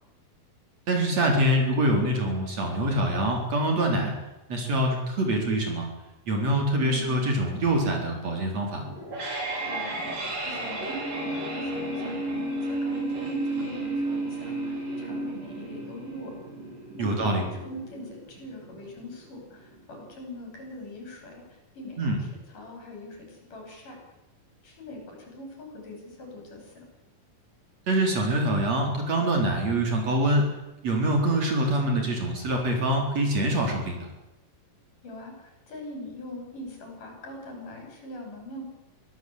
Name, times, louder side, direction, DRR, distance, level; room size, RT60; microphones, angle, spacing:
voice 1, 0.9-4.1 4.5-5.9 6.3-8.8 17.0-17.4 22.0-22.2 27.9-30.5 30.8-34.1, right 1 dB, 45° right, 2 dB, 5.3 m, -25 dB
voice 2, 6.8-7.3 9.7-10.1 10.4-16.4 17.0-21.4 21.7-22.3 22.5-24.0 24.6-26.9 35.0-38.6, left 1 dB, 65° left, 1 dB, 8.0 m, -42 dB
sound 1, 8.8-19.8, right 2 dB, 65° right, 7.0 m, -33 dB
24.5 x 16.5 x 8.1 m, 1.0 s
omnidirectional pair, 4.1 m